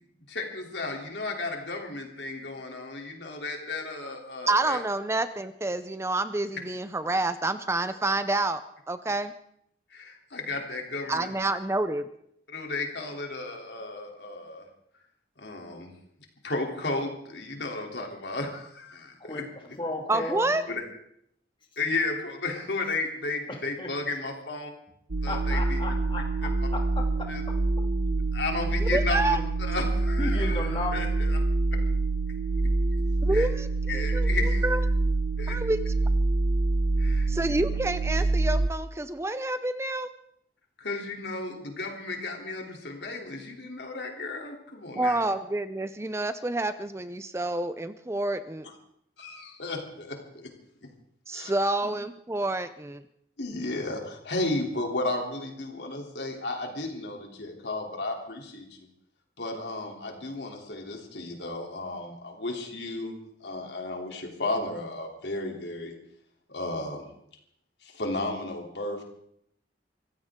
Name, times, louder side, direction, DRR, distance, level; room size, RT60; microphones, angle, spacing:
voice 1, 0.3-4.8 9.9-11.3 12.5-14.6 15.4-15.9 16.4-19.4 20.1-20.3 20.7-20.8 21.8-24.7 25.2-26.0 26.4-26.5 27.3-27.4 28.3-29.4 29.7-31.4 31.7-31.8 33.3-33.5 33.9-34.6 35.4-35.6 37.0-37.6 40.8-45.2 48.6-48.7 49.2-50.5 51.3-51.5 53.4-58.9 59.4-63.1 63.4-65.9 66.5-67.1 67.8-69.1, left 2 dB, 70° left, 2 dB, 3.2 m, -34 dB
voice 2, 4.5-8.6 8.9-9.3 11.1-12.0 20.1-20.6 28.8-29.4 33.2-33.7 33.9-34.3 34.6-34.8 35.5-35.8 37.3-40.1 44.9-48.7 51.3-53.0, right 2 dB, 15° right, 11 dB, 0.5 m, -28 dB
voice 3, 19.8-20.5 23.5-23.9 25.3-27.3 30.2-30.9, left 2 dB, 30° left, 2 dB, 2.5 m, -34 dB
sound 1, 25.1-38.7, right 2 dB, 85° right, 0.9 m, -26 dB
24.5 x 15.5 x 3.7 m, 0.71 s
head